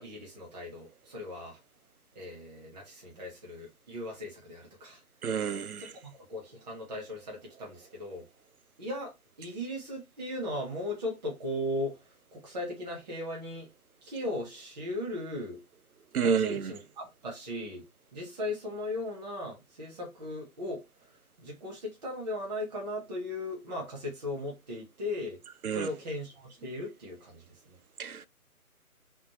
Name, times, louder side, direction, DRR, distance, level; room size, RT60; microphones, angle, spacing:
voice 1, 0.0-1.6 2.1-5.0 5.8-8.2 8.8-9.1 9.4-13.7 14.0-15.6 16.2-17.8 18.1-20.8 21.4-25.4 25.7-27.8, left 1 dB, 30° right, 1.4 m, -37 dB
voice 2, 5.2-5.8 16.1-16.6 25.6-25.9 28.0-28.1, right 7 dB, 80° right, 0.6 m, -28 dB
4.0 x 3.3 x 3.0 m
figure-of-eight pair, 150°, 44 cm